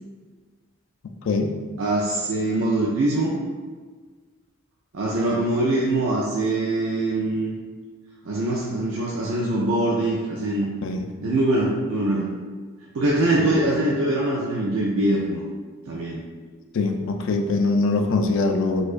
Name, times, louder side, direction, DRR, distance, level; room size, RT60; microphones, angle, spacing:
voice 1, 1.8-3.4 4.9-7.5 8.2-10.7 11.2-12.3 12.9-15.4 15.9-16.2, right 2 dB, 80° right, -4 dB, 0.4 m, -23 dB
voice 2, 16.7-18.8, left 3 dB, 65° left, 5 dB, 0.3 m, -22 dB
4.4 x 2.3 x 2.4 m, 1.4 s
head